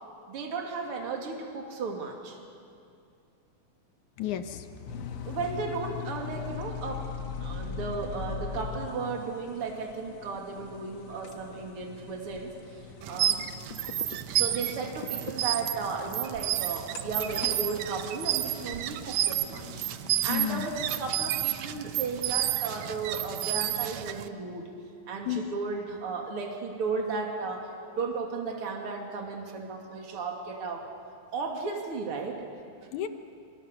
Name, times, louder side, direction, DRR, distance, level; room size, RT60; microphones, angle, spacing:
voice 1, 0.3-2.4 5.2-7.1 7.4-13.4 14.2-19.6 20.2-24.6 25.1-30.9 31.3-32.4, right 4 dB, 45° right, 1 dB, 3.3 m, -35 dB
voice 2, 4.2-5.4 20.3-20.7 25.3-25.4 32.9-33.1, left 11 dB, 70° left, 8 dB, 2.4 m, -33 dB
sound 1, 4.9-21.5, left 6 dB, 50° left, 1.5 m, -42 dB
sound 2, 13.0-24.3, right 12 dB, 70° right, 1.9 m, -31 dB
28.5 x 26.5 x 6.9 m, 2.4 s
omnidirectional pair, 3.6 m